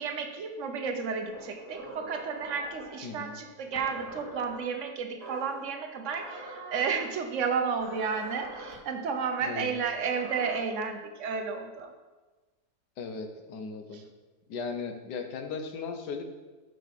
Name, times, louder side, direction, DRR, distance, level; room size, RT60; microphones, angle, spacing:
voice 1, 0.0-11.9 13.9-14.0, right 5 dB, 60° right, 5 dB, 0.9 m, -32 dB
sound 1, 1.3-3.0 3.7-4.6 5.2-5.6 6.1-7.0 7.8-8.7 9.8-10.6, right 2 dB, 45° right, 1.5 m, -44 dB
voice 2, 3.0-3.4 9.4-9.7 13.0-14.0 14.5-16.2, left 5 dB, 85° left, 6 dB, 1.4 m, -37 dB
5.5 x 5.2 x 5.7 m, 1.2 s
omnidirectional pair, 1.7 m